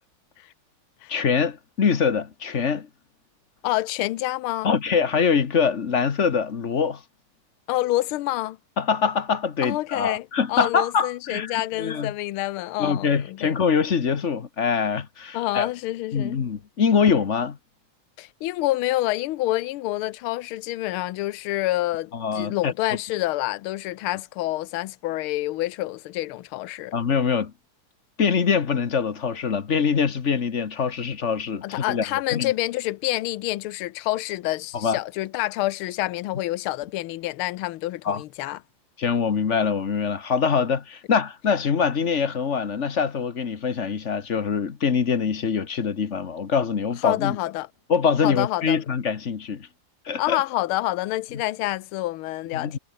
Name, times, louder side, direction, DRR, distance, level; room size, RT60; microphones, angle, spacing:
voice 1, 1.1-2.9 4.6-7.0 8.8-12.1 12.8-15.7 16.1-17.6 22.1-22.7 26.9-27.5 28.2-32.0 32.3-32.5 34.7-35.0 38.0-38.2 39.0-47.4 47.9-49.7 50.0-50.4 52.5-52.8, left 6 dB, 40° left, 1.4 m, -24 dB
voice 2, 3.6-4.7 7.7-8.6 9.6-13.6 15.3-16.4 18.2-27.0 31.6-38.6 47.0-47.7 48.2-48.8 50.2-52.8, left 16 dB, 80° left, 1.6 m, -27 dB
omnidirectional pair, 2.4 m